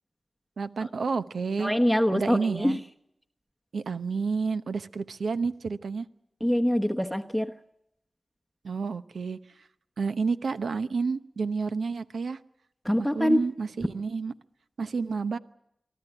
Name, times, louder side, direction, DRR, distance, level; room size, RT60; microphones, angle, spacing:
voice 1, 0.6-1.7 2.1-2.8 3.7-6.1 8.6-9.4 10.0-12.4 13.0-14.3 14.8-15.4, right 4 dB, 80° right, 12 dB, 0.9 m, -30 dB
voice 2, 1.6-2.8 6.4-7.5 12.8-13.5, equal, ahead, 5 dB, 1.1 m, -24 dB
24.0 x 14.0 x 10.0 m, 0.79 s
cardioid pair, 55°, 0 cm